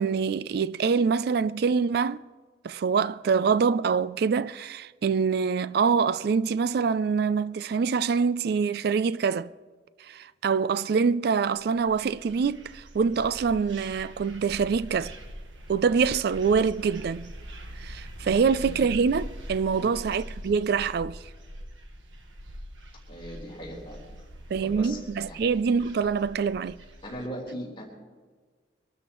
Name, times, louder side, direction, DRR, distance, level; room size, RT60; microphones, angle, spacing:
voice 1, 0.0-2.2 2.6-9.5 10.0-15.1 15.7-17.3 17.8-21.2 24.5-26.8, right 5 dB, 55° right, 0.3 m, -25 dB
sound 1, 11.6-27.3, equal, 85° right, 1.4 m, -43 dB
voice 2, 18.2-18.8 19.7-19.9 23.1-24.0 24.6-25.0 25.3-25.4 27.0-27.8, equal, 30° left, 3.8 m, -39 dB
25.0 x 13.0 x 3.1 m
head